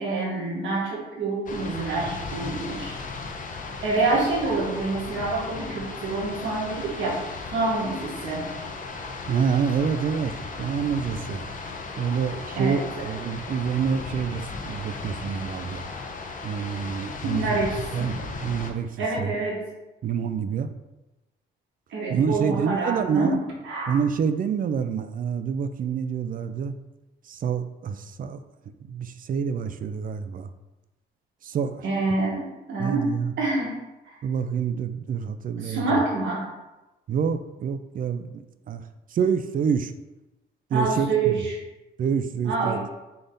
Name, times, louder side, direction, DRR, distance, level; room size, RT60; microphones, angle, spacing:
voice 1, 0.0-2.9 3.8-7.2 7.5-8.5 12.5-13.1 17.3-18.1 19.0-19.6 21.9-23.4 23.6-23.9 31.8-33.8 34.0-34.2 35.6-36.4 40.7-41.6 42.4-42.8, right 3 dB, 75° right, -3 dB, 1.6 m, -27 dB
sound 1, 1.5-18.7, left 3 dB, 40° left, 0.7 m, -36 dB
voice 2, 9.3-10.3 10.6-11.5 12.0-15.8 16.4-17.6 17.9-18.9 19.2-19.3 20.0-20.7 22.1-23.4 23.9-26.8 27.3-28.4 28.8-30.5 31.4-31.8 32.8-33.3 34.2-36.0 37.1-38.8 39.1-39.9 40.7-41.4 42.0-42.8, right 7 dB, 45° right, 10 dB, 0.4 m, -27 dB
3.8 x 3.4 x 3.9 m, 1.0 s
cardioid pair, 90°, 20 cm